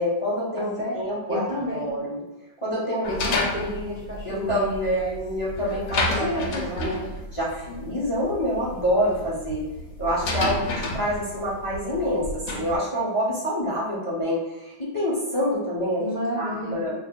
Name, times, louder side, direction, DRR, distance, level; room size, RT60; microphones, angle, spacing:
voice 1, 0.0-1.5 1.7-2.2 2.6-3.5 4.2-7.1 7.3-9.7 10.0-16.0 16.4-17.0, equal, 40° left, -7 dB, 0.4 m, -27 dB
voice 2, 0.6-1.0 1.3-1.9 3.1-5.2 6.1-7.1 16.0-16.8, equal, 80° right, -6 dB, 0.4 m, -31 dB
sound 1, 3.0-12.8, left 2 dB, 65° left, 1.1 m, -31 dB
5.1 x 3.1 x 2.2 m, 0.98 s
omnidirectional pair, 2.0 m